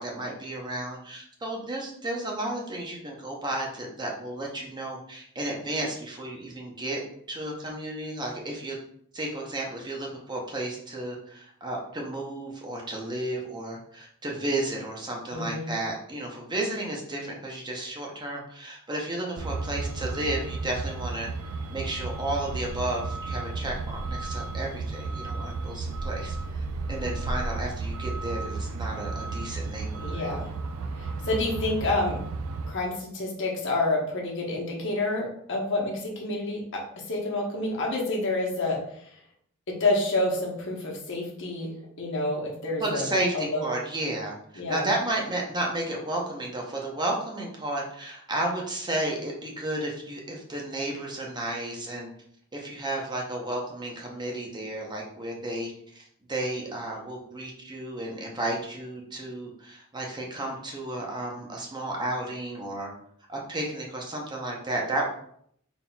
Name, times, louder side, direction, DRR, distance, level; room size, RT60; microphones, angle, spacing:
voice 1, 0.0-7.0 7.3-8.8 9.1-21.3 21.7-30.3 42.8-44.3 44.7-52.1 52.5-62.9 63.3-65.0, right 1 dB, 20° right, -1 dB, 0.7 m, -32 dB
voice 2, 15.3-15.7 30.0-30.5 31.0-32.2 32.7-39.1 39.7-43.1 43.3-43.7 44.6-44.8, left 2 dB, 60° left, -2 dB, 1.0 m, -28 dB
Truck, 19.4-32.7, right 3 dB, 70° right, 0.4 m, -33 dB
3.9 x 3.9 x 2.3 m, 0.66 s
head